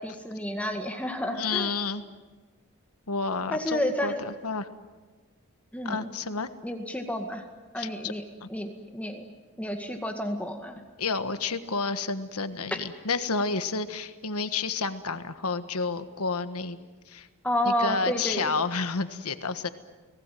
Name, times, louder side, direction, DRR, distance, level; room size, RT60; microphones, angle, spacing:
voice 1, 0.0-1.7 3.5-4.2 5.7-6.1 6.6-7.4 7.7-8.2 8.5-9.2 9.6-10.8 17.4-18.5, equal, 5° left, 4 dB, 2.0 m, -30 dB
voice 2, 1.4-2.0 3.1-4.7 5.8-6.5 7.8-8.1 8.4-8.5 11.0-16.8 17.1-17.3 17.6-19.7, left 4 dB, 85° left, 10 dB, 1.5 m, -30 dB
29.5 x 19.0 x 9.3 m, 1.3 s
head